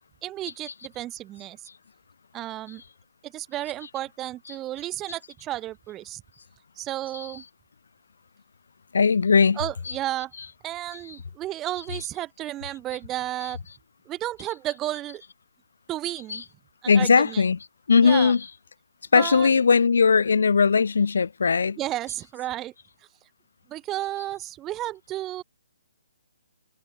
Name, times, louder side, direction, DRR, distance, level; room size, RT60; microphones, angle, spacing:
voice 1, 0.2-1.6 2.3-2.8 3.2-6.2 6.8-7.4 9.6-10.3 10.6-13.6 14.1-15.2 15.9-16.4 16.8-17.4 18.0-18.3 19.2-19.5 21.8-22.7 23.7-25.4, right 14 dB, 15° right, 3.9 m, -32 dB
voice 2, 8.9-9.6 9.9-10.0 16.3-16.4 16.9-17.6 17.9-18.4 19.1-21.8, left 5 dB, 70° left, 2.8 m, -19 dB
hypercardioid pair, 170°, 0 cm